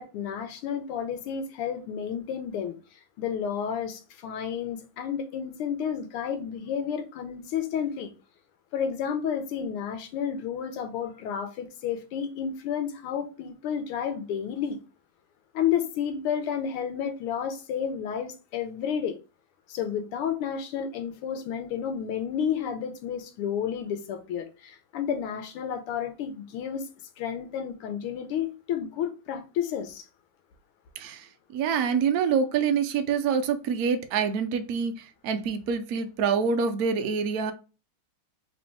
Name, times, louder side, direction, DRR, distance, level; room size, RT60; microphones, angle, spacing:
voice 1, 0.0-2.8 3.2-8.1 8.7-14.8 15.5-19.2 19.7-26.9 27.2-30.1, left 8 dB, 90° left, 1.6 m, -31 dB
voice 2, 31.0-37.5, right 6 dB, 90° right, 0.8 m, -26 dB
4.2 x 3.1 x 3.3 m
omnidirectional pair, 2.4 m